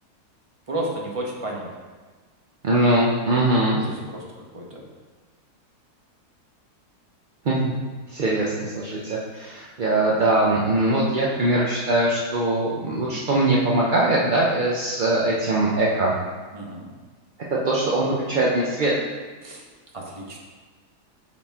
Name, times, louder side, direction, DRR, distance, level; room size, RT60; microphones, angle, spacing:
voice 1, 0.7-1.7 3.7-4.2 4.5-4.8 16.5-16.9 19.4-19.6 19.9-20.4, right 1 dB, 25° right, -2 dB, 1.0 m, -32 dB
voice 2, 2.6-3.8 7.4-7.7 8.1-16.1 17.5-18.9, right 2 dB, 50° right, -4 dB, 0.6 m, -21 dB
8.5 x 4.1 x 3.6 m, 1.4 s
omnidirectional pair, 1.7 m